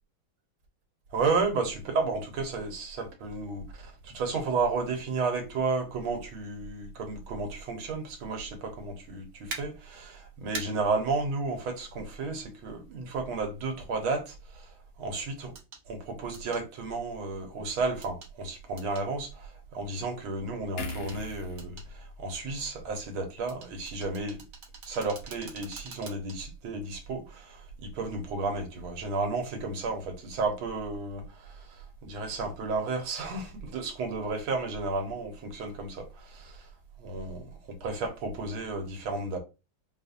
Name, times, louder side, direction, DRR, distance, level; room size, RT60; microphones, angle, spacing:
voice 1, 1.1-15.5 15.9-24.4 24.8-36.7 37.0-37.4 37.8-39.4, right 3 dB, 90° right, 1.8 m, -32 dB
sound 1, 9.5-9.6 10.5-10.7 12.7-12.8 15.6-15.8 16.3-16.6 18.0-18.3 18.8-19.1 20.9-21.2 21.6-21.9 23.5-26.4 26.8-26.9, right 4 dB, 55° right, 1.2 m, -42 dB
sound 2, 20.8-24.1 24.5-24.7, left 3 dB, 70° left, 1.6 m, -43 dB
5.3 x 2.5 x 2.7 m
omnidirectional pair, 2.2 m